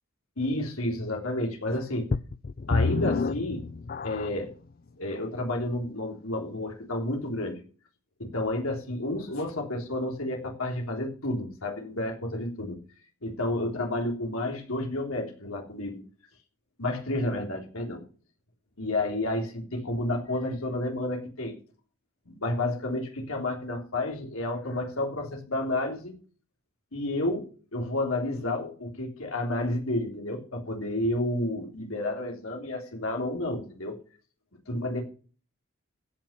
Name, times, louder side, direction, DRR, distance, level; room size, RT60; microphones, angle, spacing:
voice 1, 0.4-2.1 2.7-3.7 4.0-4.5 5.0-7.6 8.2-12.8 13.2-16.0 16.8-18.0 18.8-21.5 22.2-26.1 26.9-34.0 34.7-35.0, left 1 dB, 85° left, 1 dB, 3.4 m, -30 dB
sound 1, 2.1-4.5 5.2-5.3 5.9-6.0, left 4 dB, 45° left, 0.4 m, -28 dB
16.0 x 5.9 x 5.7 m, 0.41 s
head